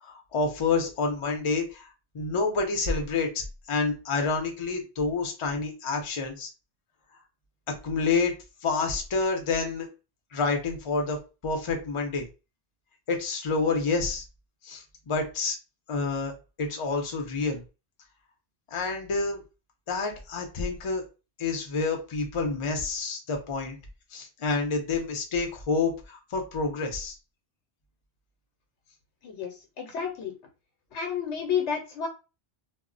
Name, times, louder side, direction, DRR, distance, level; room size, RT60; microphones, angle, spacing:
voice 1, 0.0-1.9 2.1-6.5 7.7-8.3 8.6-9.9 10.3-11.2 11.4-12.2 13.1-14.2 14.6-15.6 15.9-16.3 16.6-17.6 18.7-19.4 19.9-21.0 21.4-23.8 24.1-27.1, left 4 dB, 35° left, 3 dB, 0.5 m, -28 dB
voice 2, 29.2-30.3 30.9-32.1, left 7 dB, 80° left, 3 dB, 0.9 m, -31 dB
2.1 x 2.0 x 3.8 m, 0.30 s
omnidirectional pair, 1.1 m